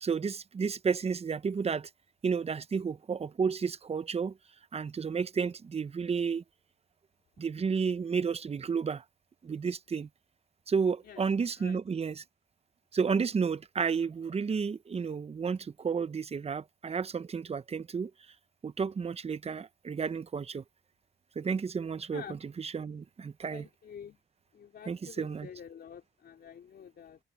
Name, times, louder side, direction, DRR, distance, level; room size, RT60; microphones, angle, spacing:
voice 1, 0.0-1.9 2.2-4.4 4.7-6.4 7.4-9.0 9.4-10.1 10.7-12.2 12.9-18.1 18.6-20.6 21.4-23.7 24.9-25.5, right 5 dB, 30° right, 0.8 m, -32 dB
voice 2, 23.5-24.2 24.5-27.2, left 8 dB, 55° left, 3.2 m, -48 dB
cardioid pair, 90°, 20 cm